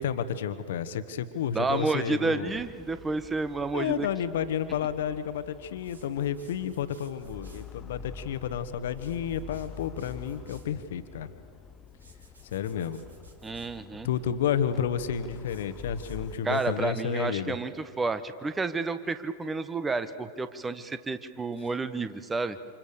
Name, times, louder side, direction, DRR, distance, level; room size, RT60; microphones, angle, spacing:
voice 1, 0.0-2.6 3.7-11.3 12.5-13.0 14.0-17.6, left 8 dB, 60° left, 11 dB, 1.4 m, -31 dB
voice 2, 1.5-4.1 13.4-14.1 16.4-22.6, right 3 dB, 15° right, 12 dB, 1.2 m, -30 dB
sound 1, 2.5-16.4, left 6 dB, 20° left, 0.7 m, -47 dB
sound 2, 5.7-7.7 8.9-10.8 11.9-13.8 15.4-17.0, right 2 dB, 75° right, 3.0 m, -58 dB
28.5 x 27.5 x 7.0 m, 2.2 s
figure-of-eight pair, 90°, 0 cm